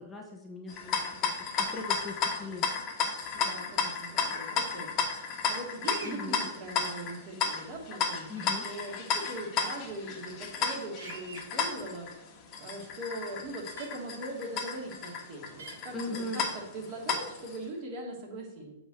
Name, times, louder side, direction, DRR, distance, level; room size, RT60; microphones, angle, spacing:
voice 1, 0.0-2.7 6.0-6.4 8.3-8.7 15.9-16.4, left 2 dB, 10° left, 0 dB, 0.9 m, -39 dB
sound 1, 0.7-17.6, left 6 dB, 30° left, 1.3 m, -33 dB
voice 2, 3.3-18.7, right 1 dB, 40° right, -1 dB, 3.0 m, -41 dB
sound 2, 5.8-6.2 8.4-8.5 11.0-11.4 13.8-13.9 15.6-15.7, right 4 dB, 80° right, 3.5 m, -44 dB
7.7 x 4.9 x 6.7 m, 0.89 s
hypercardioid pair, 150°, 0 cm